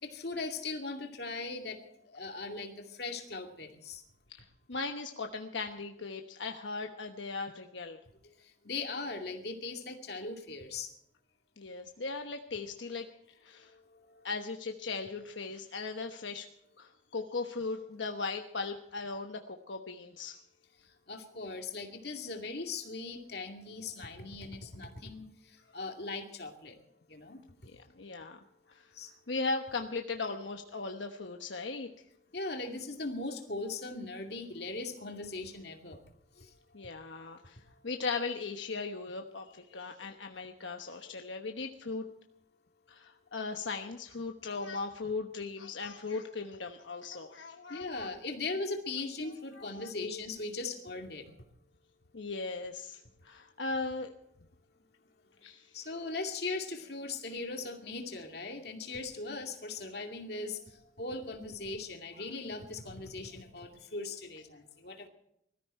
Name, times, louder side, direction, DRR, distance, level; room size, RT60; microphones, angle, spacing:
voice 1, 0.0-4.0 8.2-8.3 8.6-10.9 13.7-14.3 21.1-26.8 27.1-27.4 28.9-29.1 32.3-36.0 36.4-36.5 47.7-51.3 55.7-65.1, left 3 dB, 60° left, 4 dB, 2.4 m, -39 dB
voice 2, 4.3-8.0 11.6-13.1 13.4-13.7 14.2-16.5 16.8-20.4 27.7-28.4 28.7-28.8 29.3-31.9 36.7-42.1 42.9-48.2 49.5-50.3 52.1-54.1 55.4-55.7 59.9-60.0, left 4 dB, 85° left, 4 dB, 1.1 m, -38 dB
21.0 x 14.0 x 4.4 m, 0.75 s
head